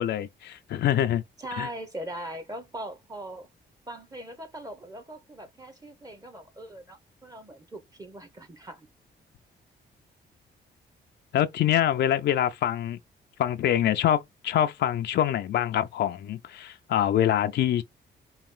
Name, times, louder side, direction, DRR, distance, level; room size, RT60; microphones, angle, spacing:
voice 1, 0.0-1.2 1.6-1.7 11.3-13.0 13.4-17.8, left 11 dB, 70° left, 0.5 m, -25 dB
voice 2, 1.4-3.5 3.9-8.9, right 1 dB, 20° right, 0.8 m, -40 dB
4.3 x 2.3 x 3.7 m
cardioid pair, 105°, 18 cm